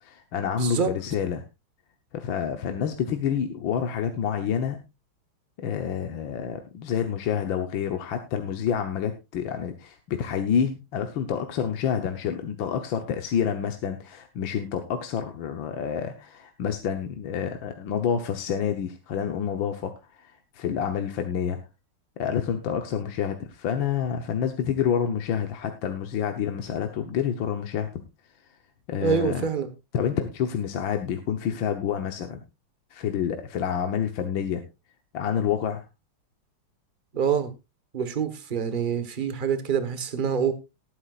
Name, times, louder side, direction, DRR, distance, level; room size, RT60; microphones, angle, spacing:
voice 1, 0.0-1.4 2.1-4.8 5.6-21.6 22.2-27.9 28.9-29.4 29.9-32.4 32.9-34.6 35.1-35.8, left 8 dB, 65° left, 6 dB, 1.7 m, -28 dB
voice 2, 0.6-0.9 29.0-29.7 37.1-37.5 37.9-40.5, right 6 dB, 30° right, 11 dB, 1.2 m, -26 dB
18.5 x 9.8 x 2.5 m, 0.25 s
omnidirectional pair, 2.3 m